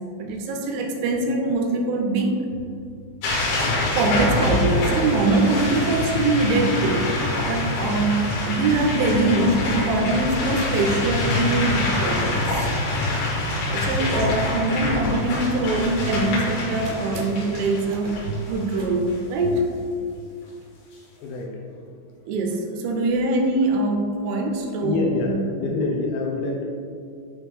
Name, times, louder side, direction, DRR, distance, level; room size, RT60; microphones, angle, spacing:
voice 1, 0.2-2.3 3.9-7.1 7.5-12.7 13.7-19.7 22.3-25.6, right 2 dB, 85° right, 3 dB, 3.0 m, -23 dB
sound 1, 3.2-19.1, left 2 dB, 65° left, 3.2 m, -25 dB
voice 2, 21.0-21.9 22.2-22.4 24.8-26.7, left 3 dB, 80° left, 0 dB, 2.7 m, -27 dB
9.0 x 3.1 x 3.5 m, 2.4 s
omnidirectional pair, 5.5 m